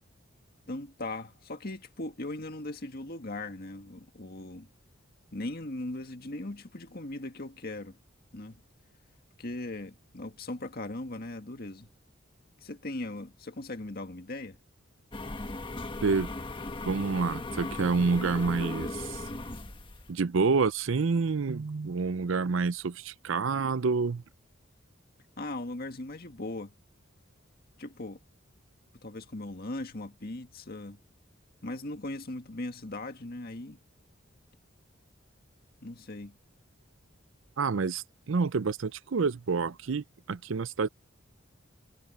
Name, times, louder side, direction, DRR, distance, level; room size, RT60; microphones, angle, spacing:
voice 1, 0.7-4.7 5.3-8.0 8.3-8.6 9.4-11.9 12.6-14.6 25.4-26.7 27.8-28.2 29.0-31.0 31.6-33.8 35.8-36.4, left 2 dB, 50° left, 1.8 m, -39 dB
sound 1, 15.1-20.1, left 2 dB, 25° left, 1.4 m, -37 dB
voice 2, 16.8-19.2 20.1-24.2 37.6-40.9, right 4 dB, 70° right, 0.6 m, -28 dB
head